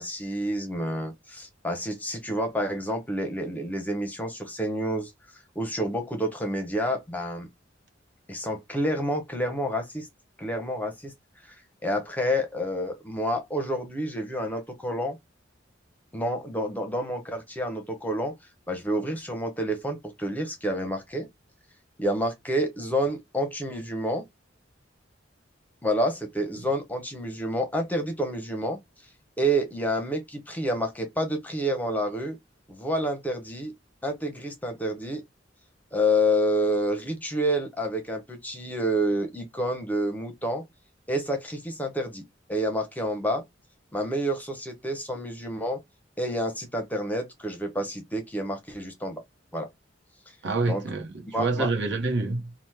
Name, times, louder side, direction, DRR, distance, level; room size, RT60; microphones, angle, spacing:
voice 1, 0.0-7.5 8.3-10.1 10.4-11.1 11.4-11.6 11.8-15.2 16.1-18.4 18.7-21.3 22.0-24.3 25.8-28.8 29.4-32.4 32.7-33.7 34.0-35.2 35.9-40.6 41.1-42.2 42.5-43.4 43.9-45.8 46.2-49.2 49.5-49.7 50.7-50.8 51.3-51.7, equal, 10° left, 0.6 m, -29 dB
voice 2, 50.4-52.5, right 3 dB, 65° right, 0.8 m, -27 dB
2.9 x 2.0 x 3.2 m
head